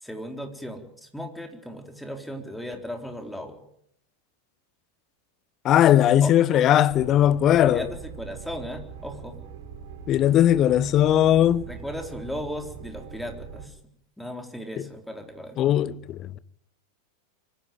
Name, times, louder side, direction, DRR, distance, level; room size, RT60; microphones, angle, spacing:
voice 1, 0.0-3.6 6.2-6.6 7.6-9.4 11.7-13.8 14.2-15.7, equal, ahead, 3.9 m, -36 dB
voice 2, 5.6-7.9 10.1-11.7 15.6-16.4, left 11 dB, 30° left, 0.9 m, -19 dB
sound 1, 6.9-13.7, right 7 dB, 55° right, 5.7 m, -42 dB
24.5 x 14.5 x 9.1 m
figure-of-eight pair, 90°, 0 cm